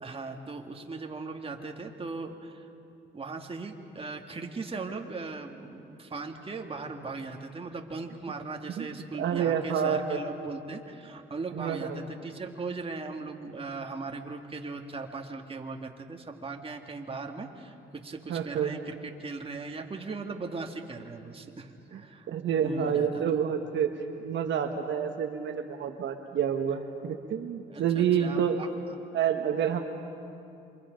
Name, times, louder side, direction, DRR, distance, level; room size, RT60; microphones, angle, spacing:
voice 1, 0.0-2.7 3.1-22.3 22.6-23.2 27.7-29.0, right 3 dB, 30° right, 3 dB, 2.0 m, -39 dB
voice 2, 9.2-10.2 11.5-12.0 18.3-18.8 22.3-23.9 24.2-28.6 29.1-29.8, right 8 dB, 70° right, 5 dB, 1.3 m, -28 dB
28.0 x 24.5 x 5.2 m, 2.6 s
cardioid pair, 90°, 20 cm